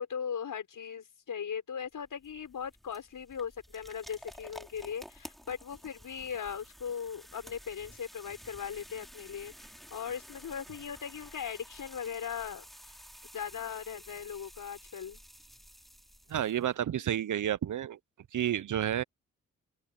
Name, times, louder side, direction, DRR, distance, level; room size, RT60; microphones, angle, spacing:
voice 1, 0.0-12.9 13.3-15.2, left 7 dB, 65° left, 6.7 m, -39 dB
sound 1, 1.8-16.7, equal, ahead, 5.8 m, -52 dB
voice 2, 16.3-18.0 18.3-19.0, right 10 dB, 60° right, 0.9 m, -30 dB
open air
hypercardioid pair, 40°, 34 cm